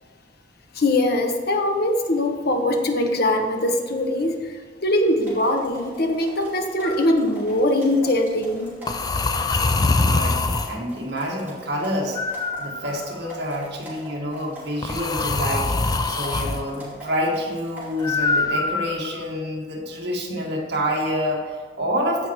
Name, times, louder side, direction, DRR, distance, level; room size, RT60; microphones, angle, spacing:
voice 1, 0.7-8.8, left 1 dB, 55° left, 4 dB, 1.0 m, -22 dB
sound 1, 5.2-18.2, right 1 dB, 10° right, 2.9 m, -43 dB
sound 2, 6.8-7.1 8.9-10.8 12.2-13.3 14.8-16.6 18.0-19.2, left 3 dB, 20° left, 0.4 m, -23 dB
voice 2, 9.7-12.2 12.6-22.3, equal, 60° right, -1 dB, 1.6 m, -28 dB
15.5 x 5.3 x 3.1 m, 1.5 s
head